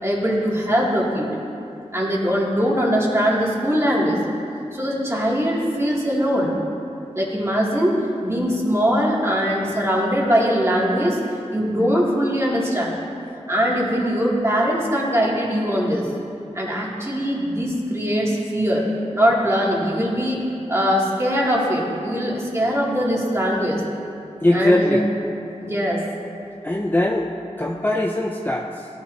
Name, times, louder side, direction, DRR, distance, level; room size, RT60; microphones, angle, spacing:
voice 1, 0.0-1.3 1.9-4.2 4.7-6.5 7.1-11.2 11.5-12.9 13.5-16.0 16.5-18.8 19.1-20.4 20.7-23.8 24.5-25.0 25.6-26.0, equal, 25° right, -5 dB, 2.5 m, -21 dB
voice 2, 24.4-25.0 26.6-27.3 27.6-28.7, left 1 dB, 15° left, 0 dB, 0.6 m, -20 dB
17.5 x 9.8 x 2.8 m, 2.6 s
wide cardioid pair, 70°, 12 cm